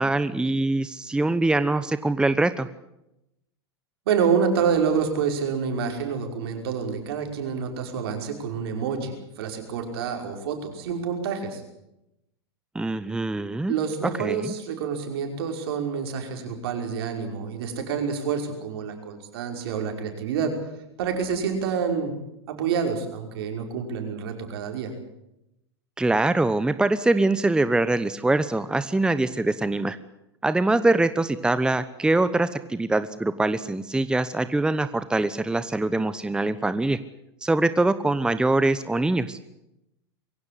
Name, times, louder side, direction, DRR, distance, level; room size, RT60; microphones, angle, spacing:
voice 1, 0.0-2.7 12.7-13.7 14.2-14.5 26.0-30.0 30.4-37.0 37.4-39.4, right 2 dB, 5° right, 13 dB, 1.0 m, -23 dB
voice 2, 4.1-11.6 13.7-20.5 21.0-22.1 22.5-24.9, right 6 dB, 65° right, 4 dB, 5.5 m, -27 dB
23.5 x 16.5 x 9.9 m, 0.86 s
hypercardioid pair, 100°, 14 cm